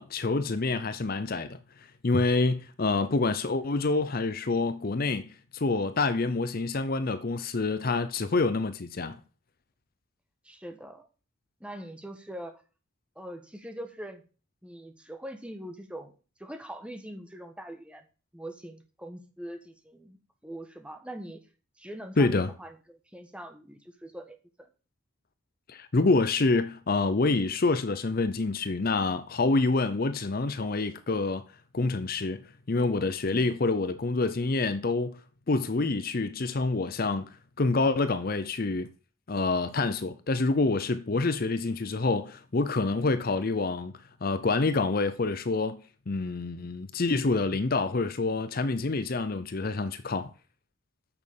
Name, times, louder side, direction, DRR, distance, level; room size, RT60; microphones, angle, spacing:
voice 1, 0.0-1.6 2.0-9.2 22.2-22.5 25.7-31.4 31.7-32.4 32.7-35.2 35.5-37.3 37.6-38.9 39.3-43.9 44.2-45.8 46.1-50.3, left 3 dB, 45° left, 0.6 m, -27 dB
voice 2, 10.4-11.1 11.6-12.5 13.1-14.2 14.6-16.1 16.4-18.0 18.3-20.2 20.4-21.4 21.8-24.7 33.3-33.6 43.2-43.4, right 1 dB, 5° right, 1.2 m, -42 dB
9.0 x 6.4 x 6.6 m
head